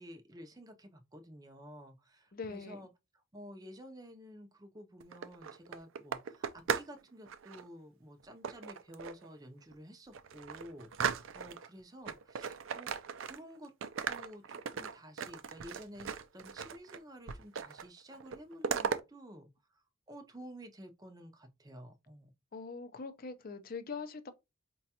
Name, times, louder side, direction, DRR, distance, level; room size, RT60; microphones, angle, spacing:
voice 1, 0.0-2.9 3.3-12.9 13.2-13.7 14.1-22.3, equal, 20° right, 0.5 m, -51 dB
voice 2, 2.3-2.9 22.5-24.3, left 4 dB, 45° left, 0.5 m, -42 dB
sound 1, 5.0-7.0 7.3-7.6 8.4-9.3 9.7-9.8 10.1-11.7 12.1-13.6 13.8-17.0 17.3-17.9 18.1-19.0, right 6 dB, 70° right, 0.4 m, -37 dB
4.9 x 2.3 x 2.8 m
head